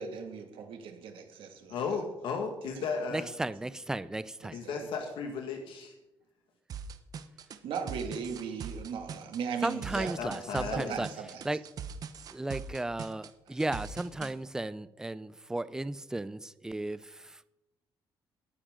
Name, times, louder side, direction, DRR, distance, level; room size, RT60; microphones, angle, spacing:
voice 1, 0.0-1.8 2.8-2.9 4.4-4.8 7.6-10.1 10.7-11.4 13.5-13.6, right 6 dB, 75° right, 4 dB, 2.1 m, -38 dB
voice 2, 1.7-3.3 4.5-5.9 10.2-11.0, left 5 dB, 75° left, 3 dB, 1.8 m, -35 dB
voice 3, 3.1-4.6 9.6-11.1 11.4-11.6 12.3-17.5, right 2 dB, 5° right, 15 dB, 0.3 m, -35 dB
sound 1, 6.7-14.3, right 6 dB, 45° right, 0.8 m, -41 dB
18.5 x 9.9 x 3.8 m, 0.93 s
cardioid pair, 175°, 9 cm